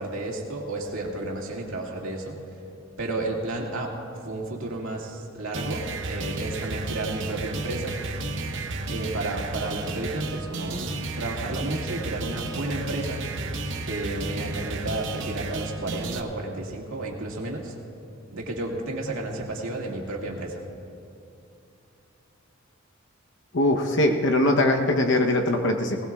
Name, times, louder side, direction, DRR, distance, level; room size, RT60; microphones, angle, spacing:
voice 1, 0.0-2.4 3.0-3.9 4.2-8.0 8.9-10.8 11.2-13.2 13.8-17.7 18.3-20.6, right 2 dB, 80° right, -1 dB, 2.1 m, -32 dB
sound 1, 5.5-16.2, right 3 dB, 60° right, 0.9 m, -32 dB
voice 2, 23.5-26.0, left 1 dB, 60° left, 3 dB, 0.9 m, -21 dB
20.0 x 19.0 x 2.4 m, 2.6 s
head